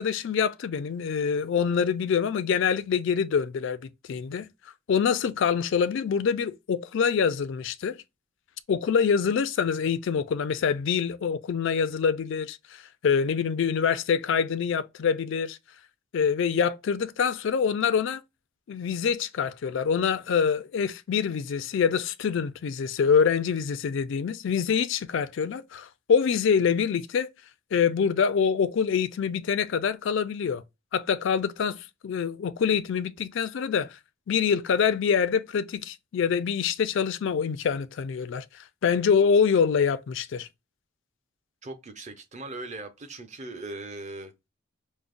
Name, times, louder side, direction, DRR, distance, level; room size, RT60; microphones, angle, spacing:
voice 1, 0.0-3.8 4.1-4.5 4.9-8.0 8.7-15.6 16.1-18.2 18.7-27.3 27.7-30.6 30.9-31.8 32.0-34.0 34.3-40.5, left 6 dB, 60° left, 0.4 m, -25 dB
voice 2, 41.6-44.5, right 2 dB, 35° right, 0.7 m, -39 dB
5.1 x 2.1 x 2.4 m
head